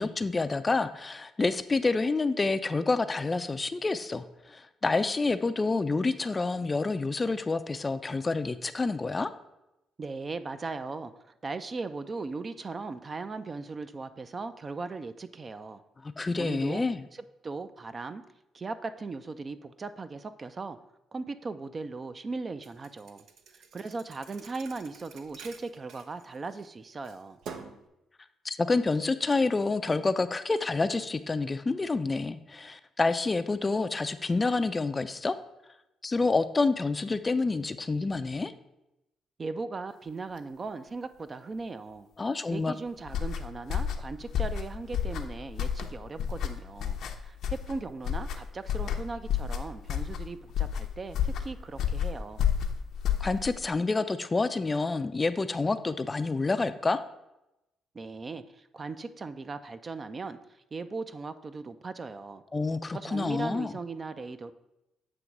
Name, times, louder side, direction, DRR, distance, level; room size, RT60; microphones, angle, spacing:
voice 1, 0.0-9.3 16.0-17.0 28.4-35.4 36.0-38.5 42.2-42.7 53.2-57.0 62.5-63.7, left 3 dB, 25° left, 11 dB, 0.4 m, -28 dB
voice 2, 10.0-15.8 16.4-18.2 18.5-20.8 21.1-23.2 23.5-27.4 39.4-42.1 42.5-47.0 47.3-52.5 57.9-62.4 62.9-64.5, right 3 dB, 35° right, 11 dB, 0.4 m, -38 dB
Thump thud, 22.6-26.7 27.0-27.9, right 6 dB, 75° right, 0.6 m, -47 dB
sound 1, 43.1-53.7, left 8 dB, 75° left, 0.6 m, -31 dB
7.8 x 3.0 x 5.9 m, 0.91 s
cardioid pair, 90°, 0 cm